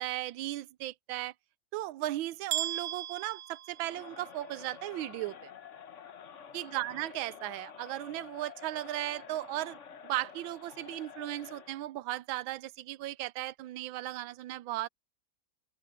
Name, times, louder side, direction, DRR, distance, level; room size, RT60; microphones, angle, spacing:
voice 1, 0.0-1.3 1.7-5.5 6.5-9.8 10.0-14.9, right 15 dB, 90° right, 1.4 m, -36 dB
sound 1, 2.5-4.5, right 12 dB, 65° right, 0.9 m, -37 dB
Crowd, 3.7-11.8, left 7 dB, 45° left, 1.1 m, -49 dB
open air
omnidirectional pair, 2.1 m